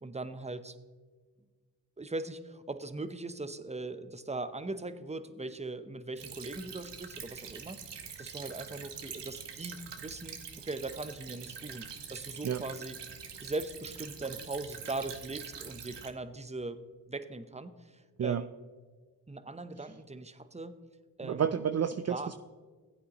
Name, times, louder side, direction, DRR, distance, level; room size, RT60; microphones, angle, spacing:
voice 1, 0.0-0.8 2.0-13.0 13.4-16.8 17.1-18.5 19.3-20.8 21.2-21.5 22.1-22.3, right 2 dB, 15° right, 11 dB, 0.8 m, -40 dB
Stream / Trickle dribble, 6.2-16.1, right 7 dB, 85° right, 1.0 m, -45 dB
voice 2, 21.2-22.3, right 8 dB, 40° right, 10 dB, 0.5 m, -30 dB
15.5 x 8.4 x 3.0 m, 1.5 s
cardioid pair, 40°, 41 cm